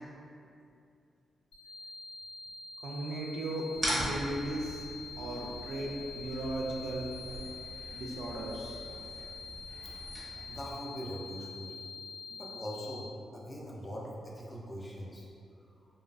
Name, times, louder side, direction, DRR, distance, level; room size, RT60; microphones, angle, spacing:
sound 1, 1.5-12.9, left 5 dB, 55° left, 0.7 m, -46 dB
voice 1, 2.8-4.9 5.2-7.1 7.9-8.9, right 1 dB, 75° right, -2 dB, 0.3 m, -37 dB
sound 2, 3.7-10.7, equal, 10° right, 0.7 m, -41 dB
voice 2, 10.5-11.9 12.3-15.3, equal, 25° left, -3 dB, 0.4 m, -42 dB
2.4 x 2.3 x 2.3 m, 2.5 s
cardioid pair, 100°, 0 cm